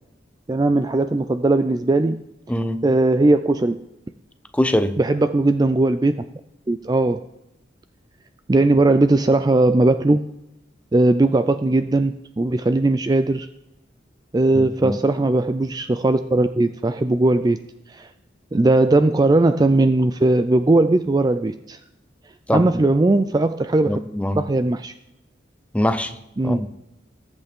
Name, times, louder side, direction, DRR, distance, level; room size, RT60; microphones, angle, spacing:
voice 1, 0.5-2.2 2.8-3.8 5.0-6.2 6.7-7.2 8.5-10.3 10.9-13.5 14.3-18.1 18.5-21.8 22.5-24.0 24.3-24.9 26.4-26.6, right 2 dB, 20° right, 0.4 m, -18 dB
voice 2, 2.5-2.9 4.5-5.0 14.5-15.0 22.5-22.7 23.8-24.4 25.7-26.2 26.4-26.7, left 1 dB, 5° left, 0.7 m, -23 dB
20.5 x 8.0 x 3.7 m
head